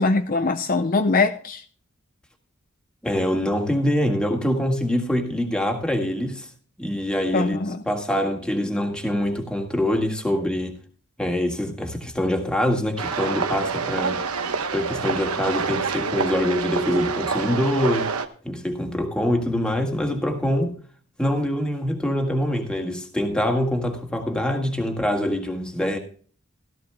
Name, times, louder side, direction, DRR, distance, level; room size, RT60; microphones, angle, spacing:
voice 1, 0.0-1.6 7.3-7.8, left 3 dB, 40° left, 0.6 m, -22 dB
voice 2, 3.0-6.5 6.8-10.8 11.2-14.2 14.7-20.7 21.2-26.0, equal, 5° left, 1.7 m, -24 dB
sound 1, 13.0-18.3, right 5 dB, 90° right, 1.0 m, -27 dB
17.0 x 13.5 x 2.2 m
head